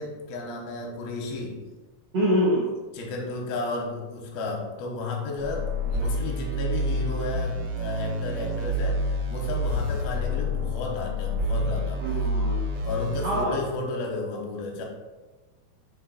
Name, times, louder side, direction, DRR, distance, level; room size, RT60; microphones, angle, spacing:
voice 1, 0.0-1.7 2.9-12.0 12.8-14.8, left 2 dB, 85° left, 0 dB, 2.8 m, -33 dB
voice 2, 2.1-2.7 12.0-12.6 13.2-13.6, equal, 70° right, -4 dB, 1.5 m, -24 dB
sound 1, 5.4-13.4, equal, 90° right, 1.5 m, -28 dB
7.0 x 3.6 x 4.0 m, 1.2 s
omnidirectional pair, 4.2 m